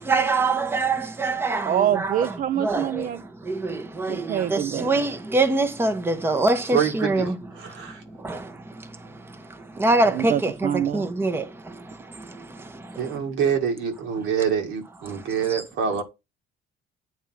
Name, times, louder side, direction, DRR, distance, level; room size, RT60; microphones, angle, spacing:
voice 1, 0.1-1.6 2.0-2.1 2.6-2.8 4.5-7.3 9.8-10.5 10.9-11.4, right 2 dB, 10° right, 0.8 m, -22 dB
voice 2, 1.7-3.2 4.1-4.9 10.1-11.1, right 10 dB, 40° right, 0.4 m, -25 dB
voice 3, 6.7-7.3 7.6-8.0 13.0-16.0, right 7 dB, 75° right, 2.0 m, -25 dB
8.7 x 3.6 x 5.7 m
cardioid pair, 155°, 20 cm